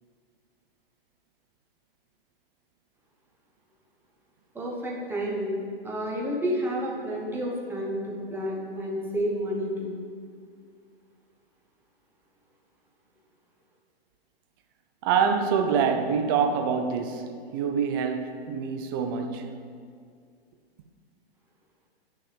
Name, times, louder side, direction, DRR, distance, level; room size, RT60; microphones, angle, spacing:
voice 1, 4.5-10.0, equal, 5° right, 1.1 m, -30 dB
voice 2, 15.0-19.6, right 6 dB, 25° right, 0.3 m, -26 dB
10.0 x 6.2 x 3.5 m
figure-of-eight pair, 115°, 31 cm